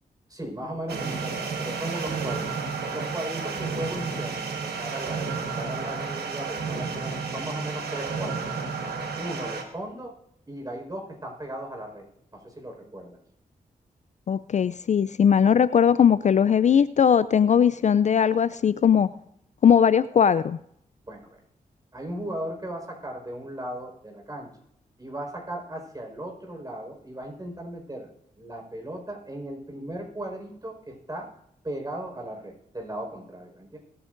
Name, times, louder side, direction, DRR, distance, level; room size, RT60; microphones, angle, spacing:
voice 1, 0.3-8.4 9.2-10.1 10.5-12.1 12.3-13.2 21.0-21.4 21.9-24.5 25.0-28.1 28.4-31.3 31.6-33.8, right 1 dB, 25° right, 1 dB, 4.8 m, -37 dB
sound 1, 0.9-9.6, right 5 dB, 85° right, 1.4 m, -31 dB
voice 2, 14.3-19.1 19.6-20.6, left 8 dB, 50° left, 16 dB, 0.4 m, -19 dB
23.5 x 8.8 x 2.6 m, 0.74 s
supercardioid pair, 45°, 16 cm